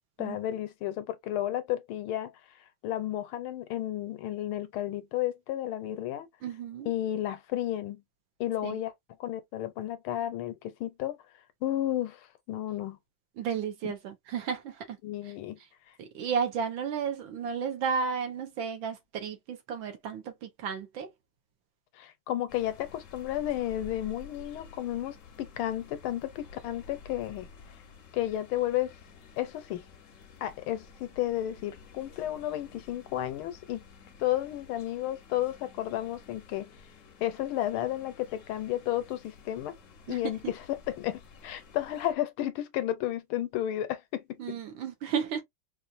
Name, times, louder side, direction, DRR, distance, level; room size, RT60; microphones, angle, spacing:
voice 1, 0.2-2.3 2.8-6.3 6.9-8.0 8.4-8.9 9.2-11.2 11.6-13.0 15.0-15.6 22.0-27.5 28.1-28.9 29.4-29.8 30.4-33.8 34.2-36.7 37.2-39.7 40.1-44.4, left 13 dB, 80° left, 1.4 m, -32 dB
voice 2, 6.4-6.9 8.6-8.8 13.4-15.0 16.0-21.1 40.1-40.2 44.4-45.4, right 6 dB, 70° right, 1.5 m, -33 dB
sound 1, 22.5-42.1, left 4 dB, 60° left, 0.8 m, -52 dB
4.4 x 2.4 x 2.5 m
omnidirectional pair, 2.3 m